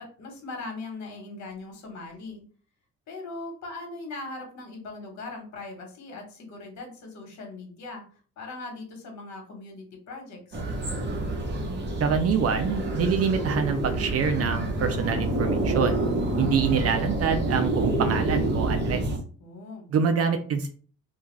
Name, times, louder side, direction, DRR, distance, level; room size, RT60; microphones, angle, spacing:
voice 1, 0.0-2.4 3.1-8.1 8.4-10.6 19.4-19.9, left 3 dB, 65° left, 3 dB, 1.1 m, -40 dB
sound 1, 10.5-19.2, right 2 dB, 35° right, 1.0 m, -28 dB
voice 2, 12.0-16.1 16.4-19.0 19.9-20.7, right 6 dB, 55° right, 7 dB, 0.4 m, -25 dB
sound 2, 14.3-19.3, left 5 dB, 30° left, 0.3 m, -40 dB
2.3 x 2.3 x 3.1 m, 0.42 s
cardioid pair, 90°, 30 cm